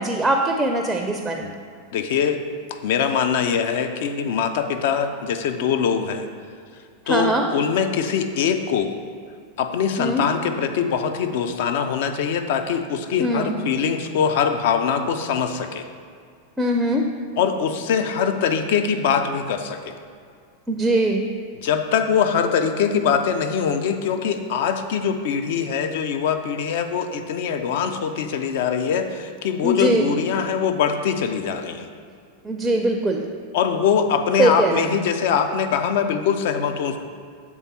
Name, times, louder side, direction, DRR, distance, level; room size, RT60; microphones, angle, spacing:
voice 1, 0.0-1.4 7.1-7.4 10.0-10.2 13.2-13.5 16.6-17.1 20.7-21.2 29.6-30.1 32.4-33.3 34.4-34.9, right 1 dB, 10° right, 3 dB, 0.4 m, -21 dB
voice 2, 1.9-2.4 2.7-6.3 7.1-8.9 9.6-15.8 17.4-19.9 21.5-31.9 33.5-37.0, left 7 dB, 55° left, 7 dB, 0.4 m, -23 dB
7.1 x 3.6 x 4.1 m, 2.2 s
figure-of-eight pair, 90°, 0 cm